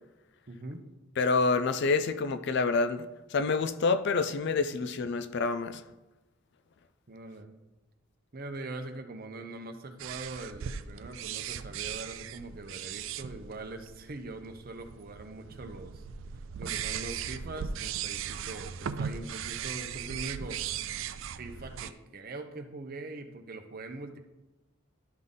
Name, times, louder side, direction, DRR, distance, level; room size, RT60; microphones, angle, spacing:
voice 1, 0.5-0.8 7.1-7.5 8.3-16.0 16.6-20.6 21.4-24.2, right 2 dB, 45° right, 0.7 m, -42 dB
voice 2, 1.2-5.8, left 4 dB, 55° left, 0.4 m, -27 dB
sound 1, 10.0-21.9, right 8 dB, 65° right, 0.4 m, -38 dB
11.5 x 3.9 x 3.7 m
head